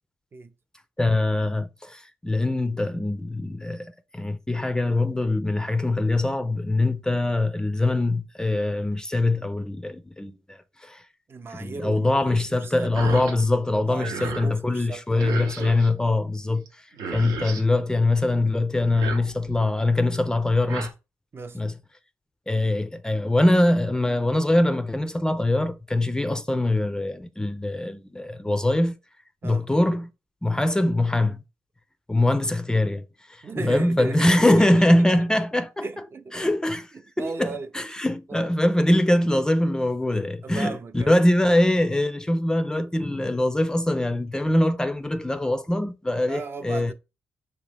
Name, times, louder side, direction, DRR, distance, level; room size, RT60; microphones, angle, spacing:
voice 1, 1.0-11.0 11.5-16.8 17.1-20.9 21.5-21.7 22.5-28.9 29.4-30.1 30.4-31.4 32.1-35.9 36.3-36.9 37.2-46.9, left 1 dB, 10° left, 0.4 m, -23 dB
voice 2, 11.3-13.2 13.9-15.4 15.7-15.8 21.3-21.6 29.4-29.7 33.4-34.7 35.8-36.5 36.9-37.7 38.3-38.5 40.4-41.2 46.3-46.9, right 4 dB, 40° right, 0.5 m, -36 dB
sound 1, 12.9-13.4 13.7-14.5 15.2-15.9 16.7-16.8 16.9-17.7 18.8-19.7 20.4-20.9, right 5 dB, 90° right, 0.8 m, -34 dB
5.0 x 2.7 x 3.3 m
cardioid pair, 80°, 6 cm